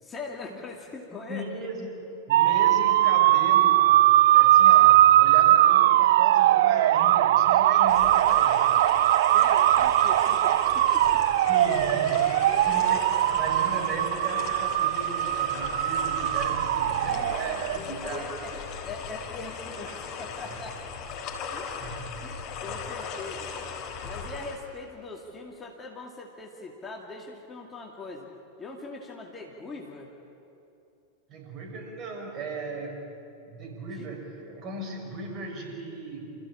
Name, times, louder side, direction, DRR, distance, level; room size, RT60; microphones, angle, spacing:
voice 1, 0.0-1.5 5.4-5.5 9.2-11.2 12.5-13.0 16.8-20.8 21.5-21.8 22.2-23.5 24.0-28.3 28.6-30.1 34.0-34.1, left 3 dB, 15° left, -1 dB, 2.4 m, -41 dB
voice 2, 1.3-4.0 4.3-8.7 11.5-13.0 13.3-18.3 19.9-20.0 21.8-22.1 22.7-22.8 31.3-33.1 33.5-36.4, right 2 dB, 35° right, 0 dB, 6.2 m, -37 dB
sound 1, 2.3-17.8, right 14 dB, 55° right, 0.5 m, -20 dB
sound 2, 7.9-24.6, left 6 dB, 35° left, 4.5 m, -38 dB
28.5 x 15.0 x 8.7 m, 2.8 s
figure-of-eight pair, 90°, 0 cm